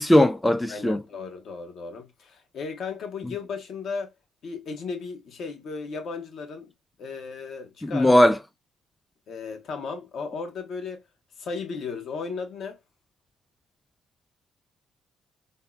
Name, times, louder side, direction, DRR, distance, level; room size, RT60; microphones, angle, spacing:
voice 1, 0.0-1.0 7.8-8.4, left 1 dB, 10° left, 0.3 m, -19 dB
voice 2, 0.7-4.1 4.4-6.7 7.0-8.1 9.3-11.0 11.4-12.8, left 5 dB, 65° left, 0.8 m, -35 dB
3.5 x 2.1 x 2.3 m
cardioid pair, 90°, 0 cm